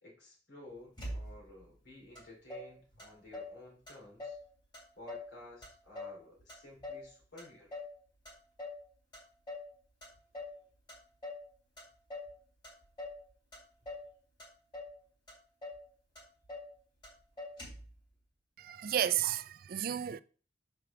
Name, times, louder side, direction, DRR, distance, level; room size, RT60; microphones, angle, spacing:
voice 1, 0.0-4.4 5.0-7.8, left 1 dB, 75° left, 3.0 m, -53 dB
Motor vehicle (road), 1.0-1.6 2.1-2.2 2.5-3.6 3.9-4.5 4.7-5.3 5.6-7.1 7.4-8.0 8.2-8.8 9.1-9.7 10.0-10.6 10.9-11.5 11.8-12.3 12.6-13.2 13.5-14.1 14.4-15.0 15.3-15.4 15.6-15.9 16.1-16.7 17.0-17.1 17.4-17.9, left 2 dB, 25° left, 3.0 m, -44 dB
voice 2, 18.6-20.2, right 10 dB, 50° right, 0.3 m, -32 dB
4.8 x 4.6 x 6.0 m
head